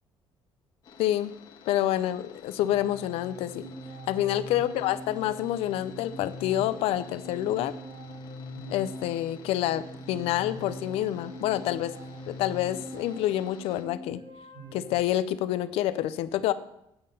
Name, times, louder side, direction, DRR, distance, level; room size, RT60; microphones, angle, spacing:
sound 1, 0.8-13.8, left 6 dB, 55° left, 1.6 m, -52 dB
voice 1, 1.0-1.3 1.7-3.6 4.1-7.7 8.7-11.9 12.3-14.2 14.7-16.5, left 13 dB, 85° left, 14 dB, 0.5 m, -28 dB
sound 2, 2.6-14.9, equal, 80° right, 3.0 m, -42 dB
9.0 x 5.6 x 6.5 m, 0.80 s
cardioid pair, 110°, 10 cm